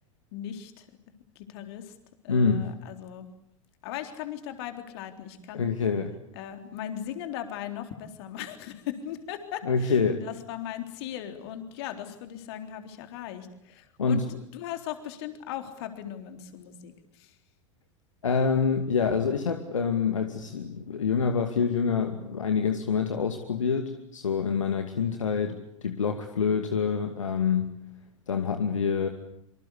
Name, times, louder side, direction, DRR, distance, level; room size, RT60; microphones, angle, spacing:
voice 1, 0.3-0.9 1.4-1.9 2.2-3.3 3.8-5.7 6.3-14.2 14.5-17.4, left 10 dB, 50° left, 7 dB, 3.7 m, -38 dB
voice 2, 2.3-2.7 5.5-6.1 9.7-10.2 14.0-14.3 18.2-25.6 25.8-27.7 28.3-29.1, left 5 dB, 70° left, 6 dB, 2.4 m, -26 dB
26.0 x 25.5 x 8.4 m, 0.73 s
figure-of-eight pair, 90°, 17 cm